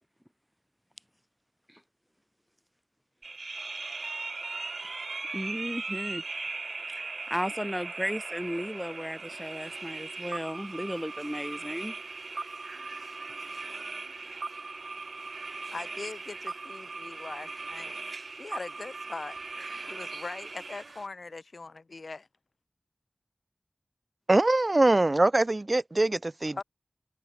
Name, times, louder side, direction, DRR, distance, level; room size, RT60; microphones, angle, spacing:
sound 1, 3.2-21.1, right 3 dB, 85° right, 1.0 m, -39 dB
voice 1, 5.3-6.2 6.9-11.9, equal, ahead, 1.2 m, -35 dB
voice 2, 15.7-17.9 18.3-19.4 19.8-22.3 26.5-26.6, left 3 dB, 75° left, 4.7 m, -41 dB
voice 3, 24.3-26.6, right 2 dB, 40° right, 0.3 m, -23 dB
wide cardioid pair, 70°, 0 cm